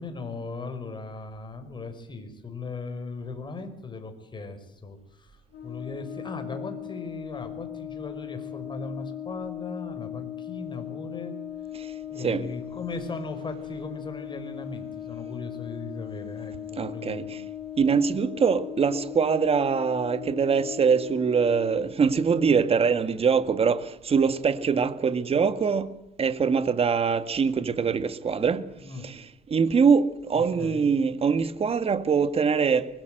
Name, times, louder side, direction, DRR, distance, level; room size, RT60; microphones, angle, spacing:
voice 1, 0.0-5.4 5.6-11.3 12.0-17.4 28.8-29.1 30.3-30.9, left 3 dB, 25° left, 5.6 m, -38 dB
Brass instrument, 5.5-21.9, left 11 dB, 80° left, 7.6 m, -38 dB
voice 2, 12.2-12.5 16.8-17.4 17.8-25.9 26.2-28.7 29.0-32.9, right 6 dB, 35° right, 1.9 m, -23 dB
24.5 x 21.0 x 8.0 m
cardioid pair, 110°, 17 cm